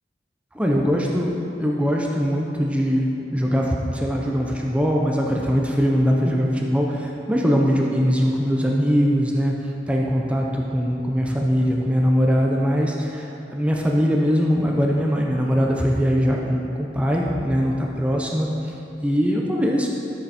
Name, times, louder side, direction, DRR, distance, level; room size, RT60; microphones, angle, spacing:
voice 1, 0.6-1.3 1.6-9.5 9.9-18.5 19.0-19.9, equal, 5° right, -2 dB, 0.7 m, -21 dB
12.5 x 7.0 x 4.3 m, 2.9 s
head